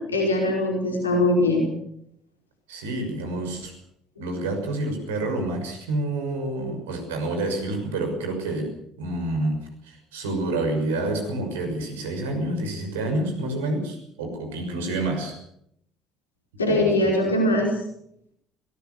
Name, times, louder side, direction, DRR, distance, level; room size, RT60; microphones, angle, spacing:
voice 1, 0.0-1.6 16.6-17.7, left 1 dB, 85° left, 1 dB, 5.0 m, -21 dB
voice 2, 2.7-3.7 4.2-15.3 16.6-17.1, right 2 dB, 75° right, 5 dB, 6.3 m, -28 dB
23.0 x 18.5 x 7.0 m, 0.73 s
figure-of-eight pair, 55°, 0 cm